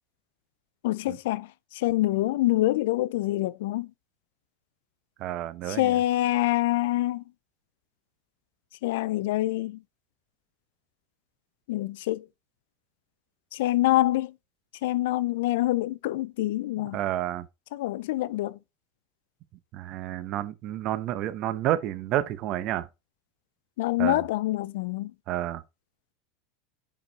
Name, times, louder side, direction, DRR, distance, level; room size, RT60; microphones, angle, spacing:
voice 1, 0.8-1.5 1.8-3.9 5.7-7.2 8.8-9.8 11.7-12.2 13.5-14.3 14.8-17.0 17.7-18.6 23.8-25.1, left 16 dB, 75° left, 0.3 m, -26 dB
voice 2, 5.2-6.0 16.8-17.5 19.7-22.9 24.0-24.2 25.3-25.6, right 13 dB, 50° right, 0.7 m, -30 dB
5.3 x 5.2 x 4.0 m
supercardioid pair, 115°, 0 cm